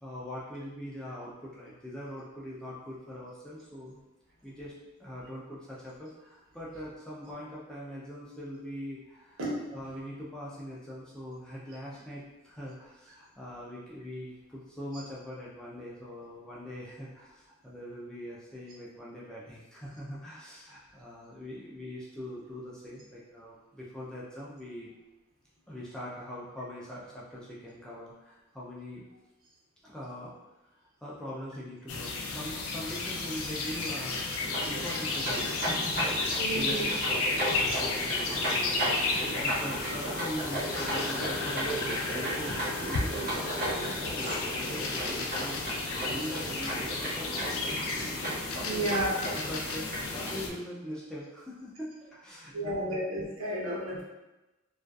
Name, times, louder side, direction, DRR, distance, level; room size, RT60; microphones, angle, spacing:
voice 1, 0.0-4.0 4.4-4.7 5.0-9.4 9.7-24.9 25.7-29.0 29.8-30.4 31.0-36.9 37.1-49.0 49.3-53.0 53.9-54.0, equal, 5° left, -7 dB, 0.3 m, -42 dB
sound 1, 31.9-50.5, left 3 dB, 80° left, 0.4 m, -33 dB
sound 2, 34.4-50.6, right 1 dB, 45° right, 0.6 m, -35 dB
voice 2, 36.4-36.9 48.7-49.2 52.5-54.0, right 1 dB, 75° right, -5 dB, 0.8 m, -31 dB
2.5 x 2.2 x 2.2 m, 1.0 s
head